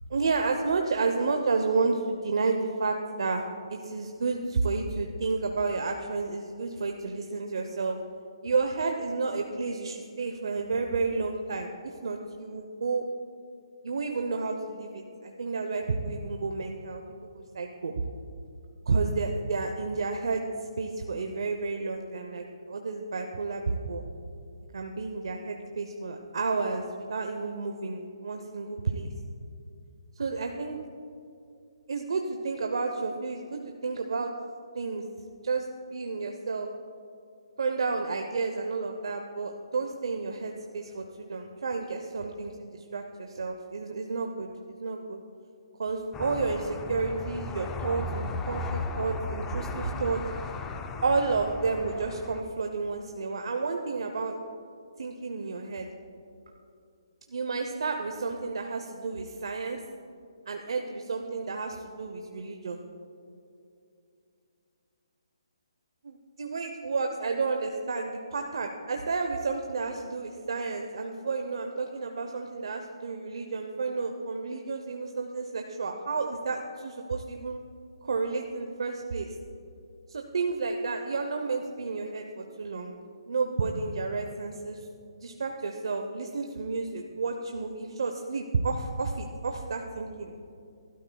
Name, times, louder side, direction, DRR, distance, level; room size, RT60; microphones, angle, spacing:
voice 1, 0.1-8.0 8.4-13.1 13.8-17.0 17.3-17.9 18.9-20.5 20.8-24.0 24.7-29.1 30.2-30.8 31.9-34.3 34.7-35.1 35.4-35.7 35.9-36.7 37.6-45.2 45.8-50.2 51.0-54.3 55.0-55.9 57.3-59.8 60.5-62.8 66.0-77.6 78.0-79.3 80.1-82.9 83.3-84.8 85.2-90.4, right 4 dB, 70° right, 4 dB, 0.8 m, -31 dB
sound 1, 46.1-52.4, left 3 dB, 10° left, 0.5 m, -36 dB
18.0 x 12.5 x 2.3 m, 2.5 s
hypercardioid pair, 160°, 3 cm